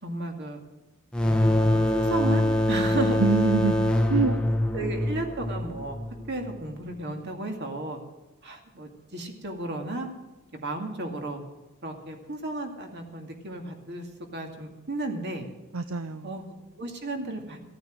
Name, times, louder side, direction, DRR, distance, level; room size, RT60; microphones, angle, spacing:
voice 1, 0.0-0.6 1.2-2.4 2.7-3.2 4.2-4.4 4.7-6.0 6.3-8.0 8.4-10.1 10.5-11.4 11.8-14.1 14.3-15.5 16.2-16.4 16.8-17.6, right 2 dB, 50° right, 3 dB, 2.3 m, -33 dB
sound 1, 1.1-6.6, left 1 dB, 5° left, 0.9 m, -24 dB
voice 2, 3.2-4.6 15.7-16.4, right 4 dB, 65° right, 11 dB, 0.6 m, -26 dB
15.5 x 9.2 x 7.6 m, 1.1 s
head